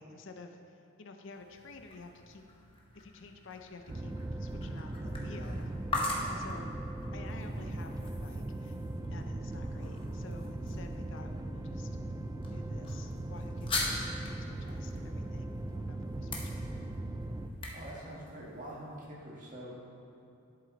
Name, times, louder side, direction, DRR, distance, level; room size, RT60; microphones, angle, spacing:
voice 1, 0.0-2.4 2.9-5.7 6.3-6.7 7.1-8.8 9.1-12.0 12.5-16.8, left 3 dB, 55° left, 5 dB, 0.6 m, -51 dB
sound 1, 1.3-19.1, left 2 dB, 25° left, 1.0 m, -43 dB
sound 2, 3.9-17.5, right 1 dB, 15° right, 0.3 m, -39 dB
voice 2, 6.1-6.5 17.7-19.7, right 1 dB, 35° right, -5 dB, 2.0 m, -45 dB
11.0 x 7.7 x 4.0 m, 2.8 s
head